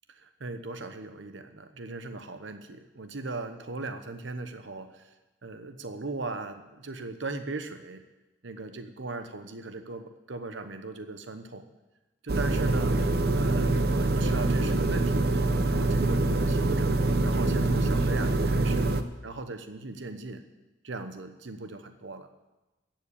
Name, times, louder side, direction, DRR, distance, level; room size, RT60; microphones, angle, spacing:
voice 1, 0.1-5.1 5.4-8.0 8.4-11.7 12.2-13.0 13.4-18.9 19.2-20.4 20.8-22.3, right 3 dB, 80° right, 8 dB, 1.0 m, -38 dB
sound 1, 12.3-19.0, right 2 dB, 55° right, 0.8 m, -25 dB
14.0 x 7.6 x 8.5 m, 1.1 s
head